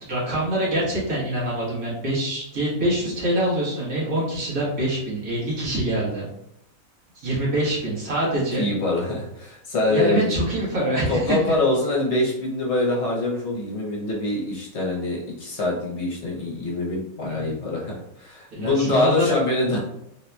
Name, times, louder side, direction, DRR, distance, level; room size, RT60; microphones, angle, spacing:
voice 1, 0.1-6.3 7.2-8.7 9.9-11.4 17.2-17.6 18.5-19.3, right 1 dB, 70° right, -7 dB, 1.8 m, -25 dB
voice 2, 8.6-10.2 11.1-19.8, left 2 dB, 55° left, -3 dB, 1.1 m, -24 dB
3.7 x 2.7 x 2.2 m, 0.80 s
omnidirectional pair, 1.5 m